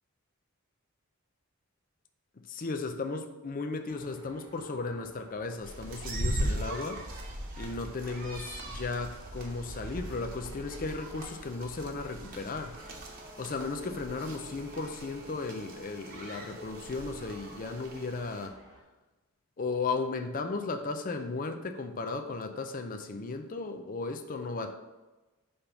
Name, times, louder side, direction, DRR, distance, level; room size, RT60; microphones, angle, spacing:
voice 1, 2.5-7.0 7.6-12.8 13.4-18.6 19.6-24.7, left 3 dB, 40° left, 6 dB, 0.5 m, -35 dB
sound 1, 3.9-18.8, right 1 dB, 20° right, 1.4 m, -56 dB
sound 2, 5.6-18.5, right 1 dB, 40° right, 1.0 m, -39 dB
5.6 x 3.4 x 5.8 m, 1.1 s
head